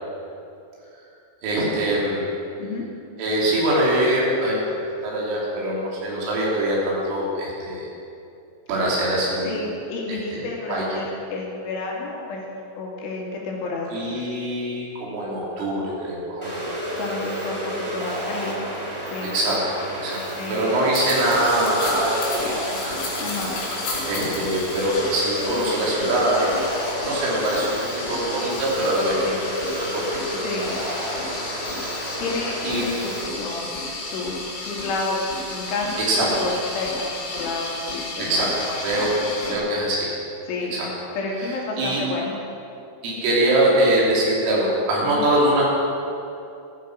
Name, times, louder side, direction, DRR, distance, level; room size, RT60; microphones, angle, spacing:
voice 1, 1.4-2.3 3.2-7.9 8.7-9.6 10.1-10.4 10.7-10.8 13.9-16.6 19.3-19.6 20.0-20.2 20.5-23.0 24.1-26.6 27.0-27.8 28.1-29.3 29.8-30.2 32.6-32.9 36.0-36.3 38.2-38.5 38.8-39.1 39.5-40.1 40.7-40.9 41.8-42.0 43.0-45.6, right 1 dB, 80° right, -5 dB, 5.9 m, -23 dB
voice 2, 9.4-12.4 12.8-13.9 17.0-17.6 17.9-18.6 19.1-19.3 20.4-20.6 23.2-23.5 29.2-29.4 30.3-30.7 32.2-36.0 36.3-39.7 40.5-40.8 41.1-42.3 45.1-45.2, left 3 dB, 75° left, -2 dB, 4.8 m, -30 dB
sound 1, 16.4-33.2, equal, 10° right, 1.8 m, -31 dB
sound 2, 20.9-39.5, left 2 dB, 60° left, 5.4 m, -33 dB
16.5 x 13.5 x 6.3 m, 2.7 s
omnidirectional pair, 5.7 m